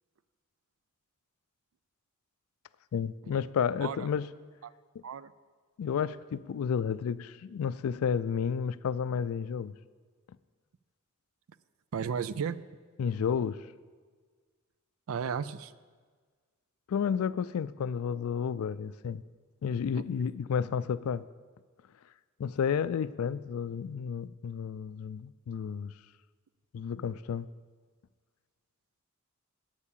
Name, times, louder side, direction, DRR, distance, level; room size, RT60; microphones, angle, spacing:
voice 1, 2.9-4.3 5.8-9.7 13.0-13.6 16.9-19.2 19.6-21.2 22.4-25.9 26.7-27.5, left 7 dB, 85° left, 17 dB, 0.3 m, -31 dB
voice 2, 11.9-12.6 15.1-15.7 19.9-20.0, right 6 dB, 75° right, 16 dB, 0.4 m, -34 dB
8.8 x 8.3 x 7.4 m, 1.5 s
head